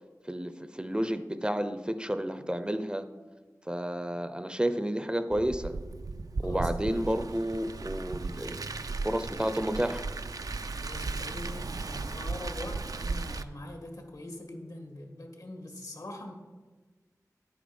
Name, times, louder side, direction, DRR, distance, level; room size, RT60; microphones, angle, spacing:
voice 1, 0.2-3.1 3.7-5.7 6.4-8.6 9.0-10.1, equal, 15° right, 10 dB, 0.6 m, -31 dB
Car, 5.3-13.4, right 3 dB, 70° right, 0.5 m, -36 dB
voice 2, 6.4-7.0 8.1-8.2 10.8-16.3, left 1 dB, 70° left, 4 dB, 1.9 m, -43 dB
11.0 x 8.7 x 5.3 m, 1.3 s
wide cardioid pair, 65°, 6 cm